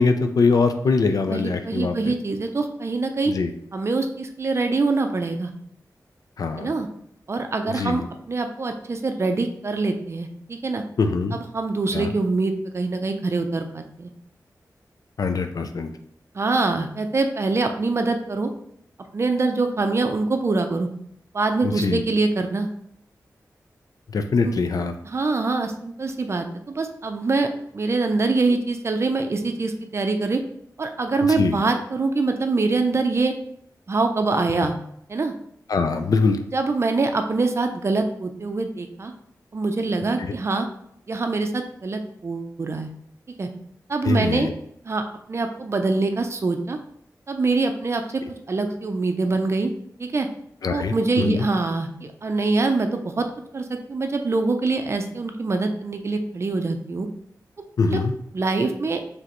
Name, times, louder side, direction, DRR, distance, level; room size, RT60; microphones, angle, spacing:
voice 1, 0.0-2.2 3.3-3.5 6.4-6.7 7.7-8.0 11.0-11.4 11.9-12.1 15.2-15.9 21.6-22.0 24.1-24.9 31.4-31.6 35.7-36.4 44.0-44.5 50.6-51.5 57.8-58.1, left 4 dB, 65° left, 7 dB, 0.4 m, -22 dB
voice 2, 1.3-3.3 3.7-5.5 6.6-6.9 7.3-10.8 11.3-14.1 16.3-18.5 19.1-20.9 21.3-22.7 24.4-24.6 25.0-27.5 27.7-30.4 30.8-33.4 33.9-34.7 35.1-35.3 36.5-39.1 39.5-40.7 41.1-42.9 43.4-43.5 43.9-44.5 44.8-46.8 47.3-48.2 48.5-49.7 50.0-50.3 50.7-53.3 53.5-57.1 57.9-58.0 58.3-59.0, right 3 dB, 40° right, 6 dB, 0.5 m, -24 dB
4.8 x 3.3 x 3.0 m, 0.72 s
wide cardioid pair, 135°, 7 cm